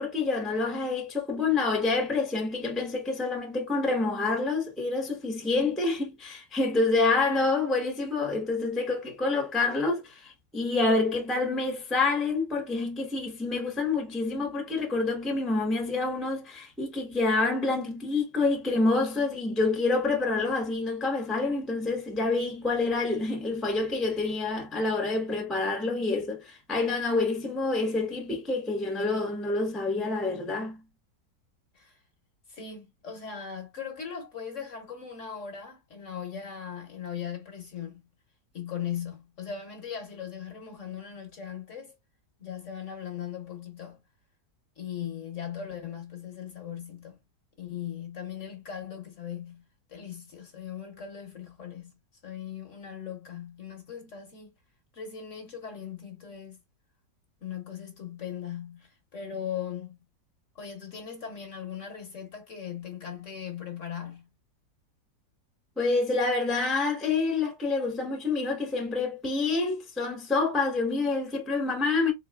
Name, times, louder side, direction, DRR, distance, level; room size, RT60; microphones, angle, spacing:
voice 1, 0.0-30.8 65.8-72.1, left 3 dB, ahead, 0.8 m, -27 dB
voice 2, 32.5-38.1 38.5-42.0 42.4-44.0 44.8-47.2 47.6-52.0 52.2-54.5 54.9-56.6 57.4-60.0 60.5-64.3, left 8 dB, 50° left, 1.2 m, -39 dB
3.9 x 3.8 x 2.3 m
omnidirectional pair, 1.9 m